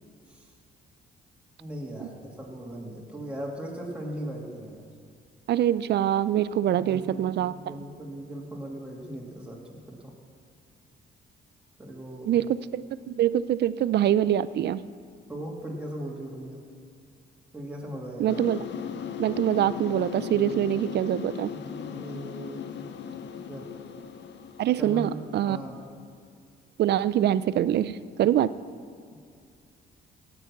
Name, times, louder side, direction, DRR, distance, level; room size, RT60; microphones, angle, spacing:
voice 1, 1.6-4.8 6.7-10.1 11.8-12.3 15.3-16.6 17.5-18.4 21.5-22.7 23.3-23.7 24.7-25.8, right 1 dB, 5° right, -3 dB, 2.6 m, -39 dB
voice 2, 5.5-7.5 12.3-12.5 12.7-12.8 13.1-14.8 18.2-18.6 19.2-21.5 24.6-25.6 26.8-28.5, right 11 dB, 60° right, 16 dB, 0.4 m, -24 dB
sound 1, 18.3-25.9, left 8 dB, 65° left, 0.7 m, -38 dB
16.5 x 6.9 x 6.0 m, 2.2 s
cardioid pair, 90°, 20 cm